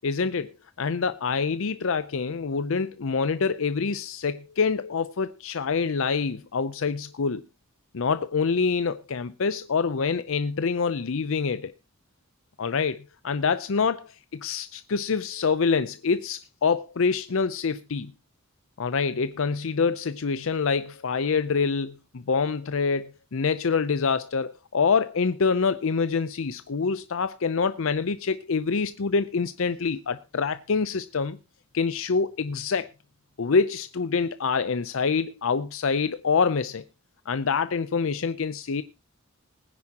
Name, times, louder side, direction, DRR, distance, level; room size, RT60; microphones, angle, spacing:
voice 1, 0.0-0.5 0.8-7.4 7.9-11.7 12.6-18.1 18.8-31.4 31.7-32.9 33.4-36.8 37.3-38.8, left 5 dB, 65° left, 0.6 m, -26 dB
20.0 x 9.6 x 2.9 m
head